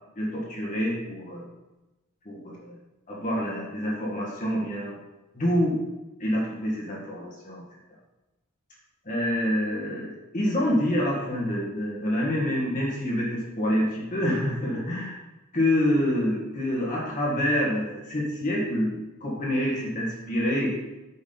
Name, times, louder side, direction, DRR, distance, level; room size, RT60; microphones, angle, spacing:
voice 1, 0.2-1.5 2.3-2.8 3.1-5.0 5.3-5.8 6.2-7.6 9.1-15.2 15.5-20.8, equal, 35° left, -4 dB, 1.6 m, -27 dB
8.2 x 6.1 x 4.0 m, 1.0 s
head